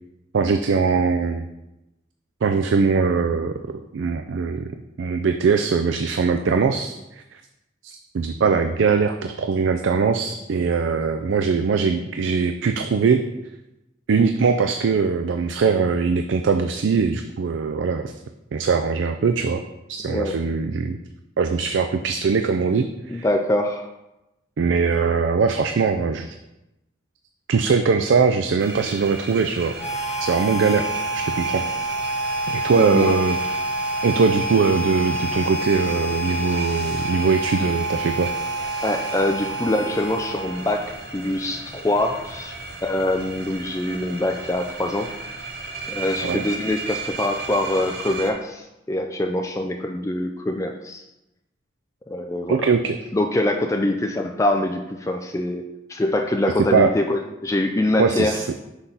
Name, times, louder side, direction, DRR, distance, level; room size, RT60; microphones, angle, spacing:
voice 1, 0.3-1.5 2.4-6.9 7.3-7.4 7.8-13.3 14.1-18.1 18.5-19.6 19.9-21.0 21.4-23.3 24.6-26.4 27.5-29.7 30.2-30.9 31.1-31.7 32.5-33.6 34.0-38.3 46.2-46.4 52.5-53.0 56.7-56.9 58.0-58.5, right 5 dB, 90° right, 6 dB, 0.4 m, -21 dB
voice 2, 20.1-20.4 23.1-23.9 32.8-33.2 38.8-42.5 42.8-45.1 45.9-51.0 52.1-52.6 53.1-58.4, left 1 dB, 15° left, 4 dB, 0.3 m, -24 dB
sound 1, 28.6-48.3, right 3 dB, 60° right, 0.8 m, -35 dB
Harmonica, 29.8-40.8, right 1 dB, 35° left, 0.9 m, -28 dB
6.1 x 5.6 x 3.9 m, 0.95 s
head